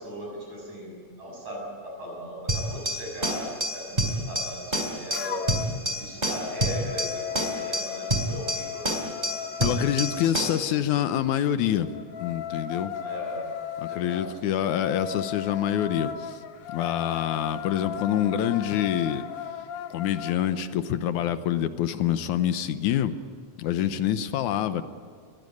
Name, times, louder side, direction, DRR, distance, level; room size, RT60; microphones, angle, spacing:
voice 1, 0.0-5.4 6.0-9.0 13.0-13.5 13.9-14.3, equal, 70° right, -1 dB, 8.4 m, -38 dB
sound 1, 2.5-10.7, right 1 dB, 15° right, 3.3 m, -29 dB
sound 2, 5.1-5.7 6.1-10.3 11.8-20.4, left 8 dB, 60° left, 1.8 m, -36 dB
voice 2, 9.6-11.9 12.2-12.9 13.8-16.4 16.7-19.2 19.9-23.2 23.6-24.8, left 10 dB, 85° left, 11 dB, 2.4 m, -26 dB
22.5 x 16.5 x 9.7 m, 2.1 s
omnidirectional pair, 3.4 m